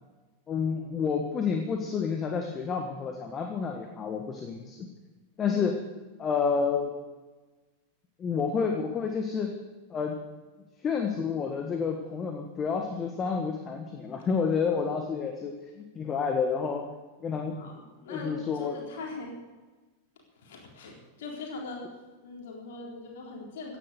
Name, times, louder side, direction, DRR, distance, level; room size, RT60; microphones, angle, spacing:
voice 1, 0.5-4.9 5.4-5.8 6.2-6.9 8.2-9.5 9.9-10.1 10.8-16.9 17.2-17.6 18.1-18.8, left 5 dB, 25° left, 4 dB, 1.6 m, -29 dB
voice 2, 5.4-5.7 17.6-19.3 20.4-21.8 22.2-23.8, left 3 dB, 55° left, -1 dB, 3.9 m, -41 dB
16.0 x 10.0 x 6.8 m, 1.2 s
figure-of-eight pair, 90°, 0 cm